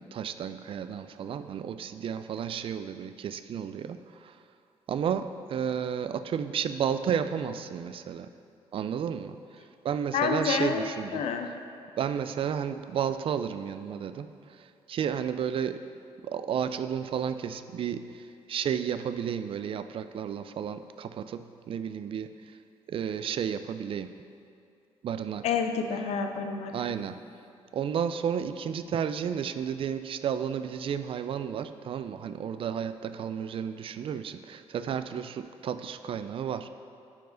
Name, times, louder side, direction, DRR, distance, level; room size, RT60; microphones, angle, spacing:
voice 1, 0.0-4.4 4.9-8.3 8.7-9.4 9.8-11.2 12.0-15.9 16.2-22.6 22.9-24.1 25.0-25.5 26.7-27.2 27.7-36.7, right 8 dB, 55° right, 11 dB, 0.4 m, -32 dB
voice 2, 10.1-10.9 11.1-11.5 25.4-26.7, left 6 dB, 80° left, 6 dB, 0.6 m, -28 dB
9.7 x 4.7 x 3.9 m, 2.5 s
cardioid pair, 85°, 11 cm